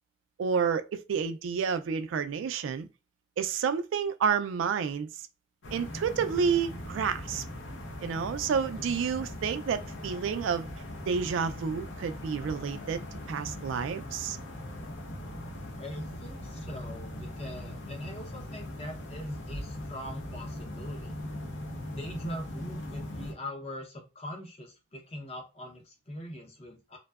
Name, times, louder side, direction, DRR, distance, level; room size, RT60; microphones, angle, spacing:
voice 1, 0.4-2.9 3.4-5.1 5.7-7.4 8.0-10.7 11.1-14.4, right 6 dB, 80° right, 0.3 m, -30 dB
sound 1, 5.6-23.3, left 1 dB, 75° left, 0.7 m, -40 dB
voice 2, 8.8-9.1 15.8-21.2 21.9-27.0, left 1 dB, 30° left, 0.6 m, -41 dB
2.6 x 2.1 x 2.3 m
head